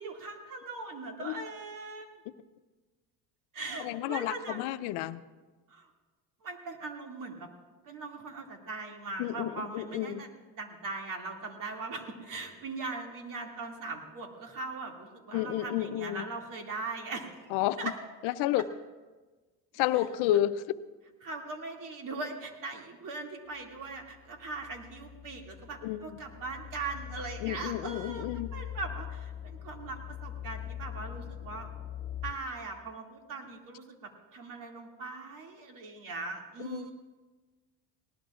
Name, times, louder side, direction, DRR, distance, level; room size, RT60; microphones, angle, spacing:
voice 1, 0.0-2.2 3.5-4.6 5.7-5.9 6.4-7.5 7.8-10.3 10.5-17.4 17.8-18.0 21.2-31.7 32.2-36.9, right 3 dB, 55° right, 1 dB, 2.5 m, -40 dB
voice 2, 3.8-5.2 9.2-10.2 15.3-16.2 17.5-17.9 18.2-18.6 19.7-20.6 25.8-26.2 27.4-28.5 36.6-36.9, left 13 dB, 85° left, 13 dB, 0.7 m, -31 dB
sound 1, 23.7-32.3, left 11 dB, 30° left, 2.2 m, -43 dB
19.5 x 18.5 x 2.5 m, 1.3 s
cardioid pair, 110°, 39 cm